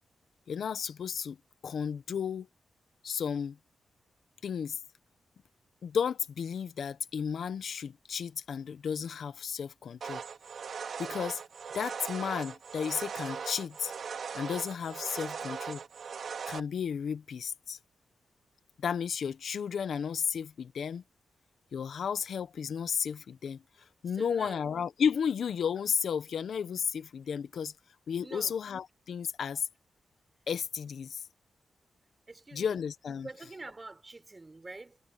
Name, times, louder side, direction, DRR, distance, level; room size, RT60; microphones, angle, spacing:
voice 1, 0.5-1.4 1.6-2.5 3.0-3.6 4.4-4.8 5.8-10.2 11.0-11.4 11.7-13.9 14.3-15.8 16.5-17.8 18.8-21.0 21.7-23.6 24.0-27.7 28.1-29.7 30.5-31.2 32.5-33.3, left 7 dB, 75° left, 1.1 m, -33 dB
sound 1, 10.0-16.6, right 6 dB, 70° right, 2.4 m, -39 dB
voice 2, 24.1-24.6 28.2-28.5 32.3-32.8 33.2-35.0, right 3 dB, 30° right, 4.2 m, -46 dB
cardioid pair, 85°, 0 cm